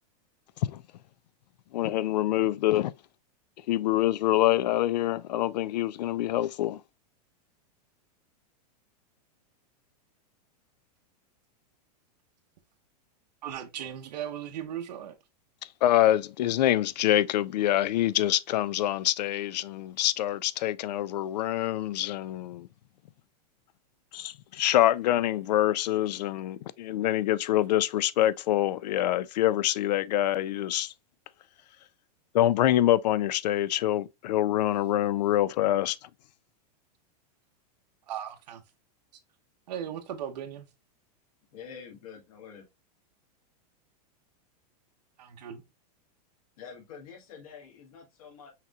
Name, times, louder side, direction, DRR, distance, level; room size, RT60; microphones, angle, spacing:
voice 1, 1.7-2.9 3.7-6.8 15.8-22.7 24.1-30.9 32.3-36.0, left 13 dB, 90° left, 0.4 m, -25 dB
voice 2, 13.4-15.1 38.1-38.6 39.7-40.7 45.2-45.6, right 9 dB, 85° right, 0.9 m, -37 dB
voice 3, 41.5-42.7 46.6-48.5, left 6 dB, 60° left, 1.6 m, -46 dB
5.7 x 3.0 x 2.2 m
supercardioid pair, 170°, 21 cm